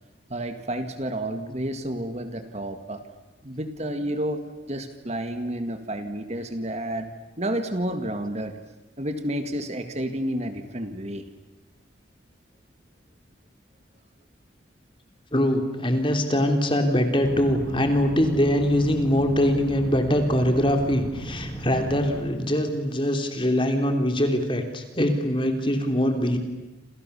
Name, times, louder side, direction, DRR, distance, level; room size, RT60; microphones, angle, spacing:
voice 1, 0.3-3.1 3.4-4.4 4.7-7.1 7.4-8.6 9.0-11.2, right 1 dB, 35° right, 8 dB, 2.0 m, -30 dB
voice 2, 15.3-26.4, equal, 25° left, 5 dB, 3.4 m, -23 dB
sound 1, 17.2-22.2, right 1 dB, 5° left, 4.4 m, -36 dB
29.0 x 28.0 x 7.1 m, 1.1 s
head